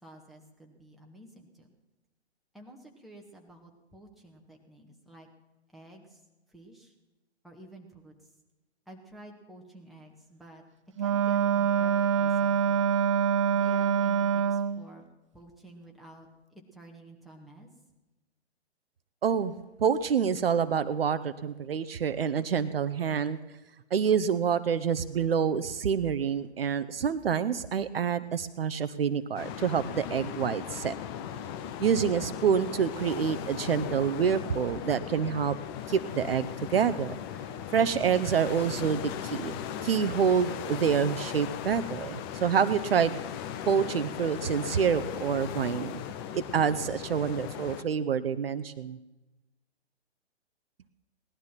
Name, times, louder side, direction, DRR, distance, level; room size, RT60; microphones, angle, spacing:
voice 1, 0.0-1.7 2.5-5.3 5.7-6.2 6.5-6.9 7.4-8.1 8.9-10.6 11.0-12.9 13.5-15.1 15.3-16.3 16.7-17.7, right 1 dB, ahead, -1 dB, 1.7 m, -51 dB
Wind instrument woodwind instrument, 11.0-14.8, right 8 dB, 30° right, 0.4 m, -25 dB
voice 2, 19.2-19.5 19.8-23.4 23.9-30.9 31.8-35.6 35.9-37.2 37.7-39.5 39.8-43.1 43.7-46.0 46.3-49.0, right 7 dB, 60° right, 12 dB, 0.8 m, -27 dB
sound 1, 29.4-47.8, left 9 dB, 20° left, 0.7 m, -38 dB
18.0 x 12.0 x 5.9 m, 1.1 s
figure-of-eight pair, 120°, 34 cm